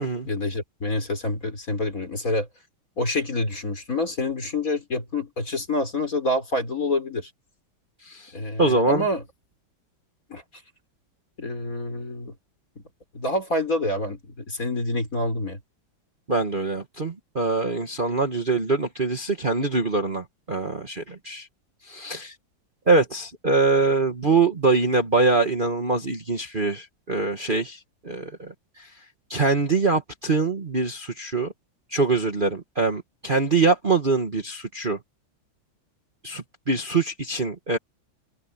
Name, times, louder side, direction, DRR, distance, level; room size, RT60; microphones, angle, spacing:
voice 1, 0.0-2.5 3.0-7.3 8.3-9.2 10.3-10.4 11.4-12.3 13.1-15.6, left 2 dB, 45° left, 5.3 m, -27 dB
voice 2, 8.6-9.1 16.3-21.5 21.9-22.3 22.9-27.8 28.0-28.9 29.3-31.5 31.9-35.0 36.2-37.8, right 3 dB, 30° right, 1.5 m, -23 dB
omnidirectional pair, 2.1 m